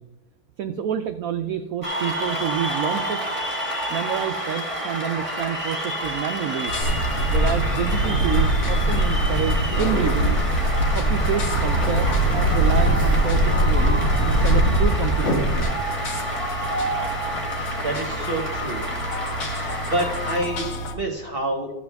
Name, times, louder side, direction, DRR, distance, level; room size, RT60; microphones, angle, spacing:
voice 1, 0.6-3.4 3.9-6.7 7.3-10.4 10.9-15.8, right 9 dB, 85° right, 8 dB, 0.7 m, -28 dB
Cheering / Applause, 1.8-20.4, right 1 dB, 20° right, 1.7 m, -29 dB
sound 1, 6.7-20.9, left 1 dB, 55° left, 1.6 m, -32 dB
Bird, 6.8-15.6, right 1 dB, 70° left, 2.3 m, -21 dB
voice 2, 17.6-18.8 19.8-21.7, right 1 dB, 35° right, 1 dB, 1.1 m, -28 dB
14.0 x 7.5 x 3.4 m, 1.2 s
omnidirectional pair, 2.0 m